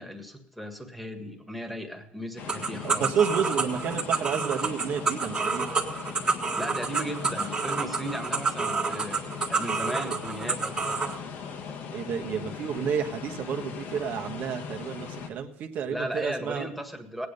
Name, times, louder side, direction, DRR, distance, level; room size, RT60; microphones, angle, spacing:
voice 1, 0.0-3.1 6.5-11.0 15.9-17.3, equal, ahead, 5 dB, 1.8 m, -36 dB
sound 1, 2.4-15.3, left 6 dB, 70° left, 1.8 m, -39 dB
sound 2, 2.5-11.1, right 4 dB, 25° right, 1.8 m, -29 dB
voice 2, 2.8-5.7 11.9-16.7, right 7 dB, 60° right, 3 dB, 1.5 m, -30 dB
17.5 x 9.6 x 5.4 m, 0.79 s
cardioid pair, 140°, 4 cm